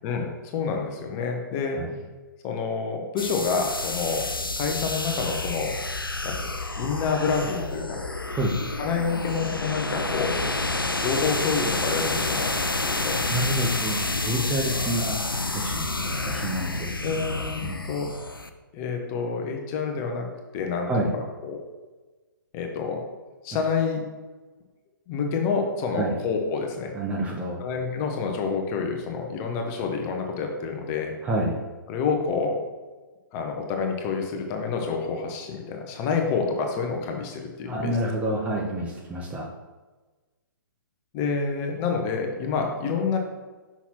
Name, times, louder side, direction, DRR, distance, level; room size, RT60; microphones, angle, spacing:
voice 1, 0.0-1.9 2.4-4.3 4.6-5.7 6.2-8.0 8.8-10.4 11.0-13.2 17.0-18.1 18.7-20.3 20.5-21.6 22.5-23.0 23.4-24.0 25.1-26.9 27.6-31.1 31.9-32.6 33.3-38.0 41.1-43.2, left 5 dB, 25° left, 3 dB, 0.8 m, -28 dB
sound 1, 3.2-18.5, left 2 dB, 90° left, 0.5 m, -29 dB
voice 2, 8.3-8.6 13.3-15.2 15.5-17.0 17.6-17.9 20.9-21.1 25.9-26.2 26.9-27.6 31.2-31.6 37.7-39.5, right 1 dB, 10° right, -2 dB, 0.5 m, -28 dB
6.0 x 5.6 x 2.9 m, 1.3 s
figure-of-eight pair, 125°, 11 cm